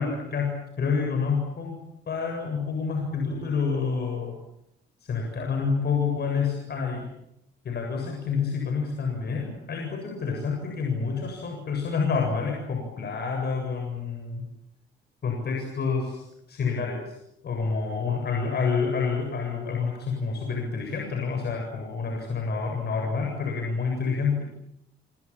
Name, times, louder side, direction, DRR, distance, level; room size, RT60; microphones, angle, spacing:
voice 1, 0.0-1.8 2.1-4.3 5.1-7.1 7.6-14.5 15.2-17.2 17.4-24.4, left 5 dB, 55° left, 2 dB, 7.7 m, -28 dB
27.5 x 26.5 x 7.4 m, 0.79 s
cardioid pair, 90°, 20 cm